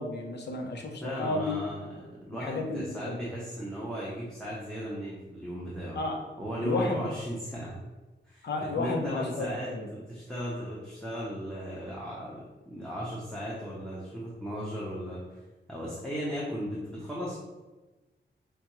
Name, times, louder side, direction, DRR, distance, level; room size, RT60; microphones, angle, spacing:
voice 1, 0.0-1.6 2.4-3.2 5.9-6.2 6.6-7.1 8.4-9.9, left 2 dB, 60° left, 2 dB, 0.7 m, -32 dB
voice 2, 1.0-2.0 2.2-6.0 6.4-7.8 8.3-15.4 15.7-17.3, equal, 5° left, -7 dB, 0.7 m, -36 dB
5.0 x 2.2 x 3.0 m, 1.2 s
wide cardioid pair, 105°, 19 cm